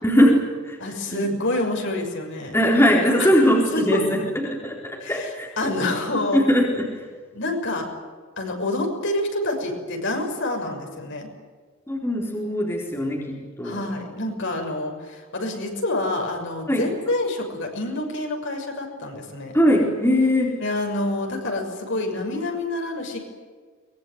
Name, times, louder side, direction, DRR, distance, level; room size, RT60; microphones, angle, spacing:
voice 1, 0.0-0.8 1.1-1.3 2.5-5.7 6.3-7.0 11.9-13.8 16.7-16.9 19.5-20.6, equal, 10° left, -1 dB, 4.2 m, -21 dB
voice 2, 0.8-2.6 3.2-3.3 3.7-4.0 5.0-6.4 7.3-7.9 8.4-11.3 13.6-19.5 20.6-23.2, left 2 dB, 55° left, 2 dB, 6.4 m, -27 dB
24.0 x 22.5 x 9.5 m, 1.5 s
head